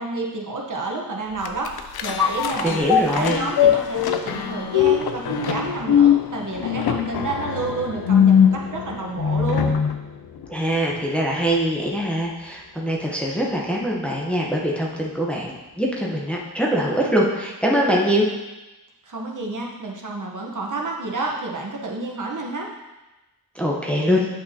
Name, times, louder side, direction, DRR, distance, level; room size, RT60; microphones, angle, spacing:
voice 1, 0.0-1.7 2.0-2.8 3.1-9.7 19.0-22.7, right 3 dB, 55° right, -1 dB, 1.1 m, -29 dB
sound 1, 1.4-10.0 10.4-10.5, left 8 dB, 80° left, 0.5 m, -21 dB
voice 2, 2.6-3.4 10.5-18.2 23.5-24.3, equal, 5° left, -3 dB, 0.9 m, -23 dB
8.6 x 5.5 x 2.8 m, 1.1 s
wide cardioid pair, 110°, 37 cm